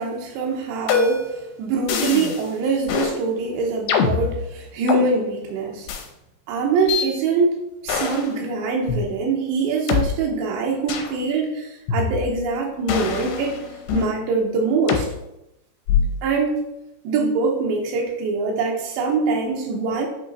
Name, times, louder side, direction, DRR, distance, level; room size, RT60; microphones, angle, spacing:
voice 1, 0.0-5.9 6.5-7.6 7.8-13.6 13.9-15.1 16.2-16.6 17.0-20.1, right 4 dB, 85° right, 0 dB, 3.1 m, -23 dB
sound 1, 0.9-1.4 1.9-2.4 2.9-3.2 3.9-5.0 5.9-6.0 6.9-7.1 7.9-8.3 8.9-9.0 9.9-10.0 10.9-11.1 11.9-12.5 12.9-14.1 14.9-15.1 15.9-16.3, left 7 dB, 80° left, 2.7 m, -24 dB
8.4 x 3.2 x 4.0 m, 0.86 s
omnidirectional pair, 4.8 m